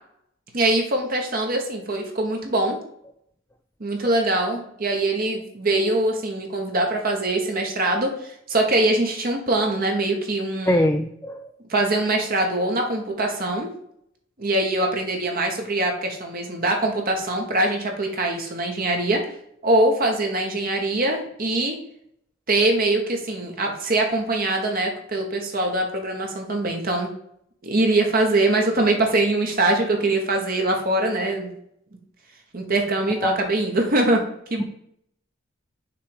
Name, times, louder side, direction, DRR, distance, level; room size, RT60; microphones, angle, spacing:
voice 1, 0.5-2.8 3.8-10.9 11.7-13.7 14.4-19.2 19.6-21.8 22.5-27.1 27.6-31.5 32.5-34.6, right 2 dB, 45° right, 2 dB, 1.2 m, -23 dB
voice 2, 10.7-11.5 33.2-33.4, left 1 dB, 10° left, 4 dB, 0.4 m, -22 dB
6.6 x 3.3 x 4.8 m, 0.72 s
head